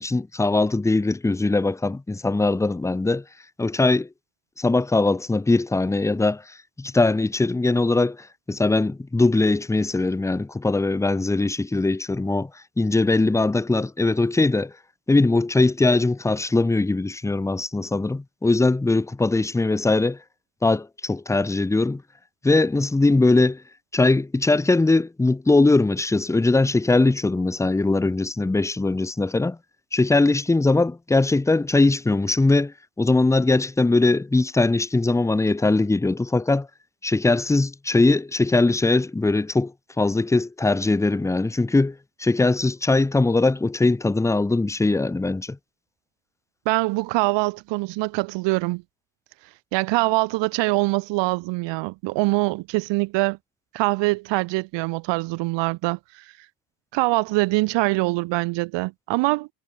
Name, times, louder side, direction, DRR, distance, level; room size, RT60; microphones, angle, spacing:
voice 1, 0.0-3.2 3.6-4.1 4.6-6.4 6.8-12.5 12.8-14.7 15.1-20.2 20.6-22.0 22.4-23.6 23.9-29.6 29.9-36.7 37.0-45.6, left 2 dB, 5° left, 0.7 m, -21 dB
voice 2, 46.6-48.8 49.7-53.4 53.7-56.2 56.9-59.5, right 23 dB, 75° right, 1.2 m, -23 dB
cardioid pair, 100°, 44 cm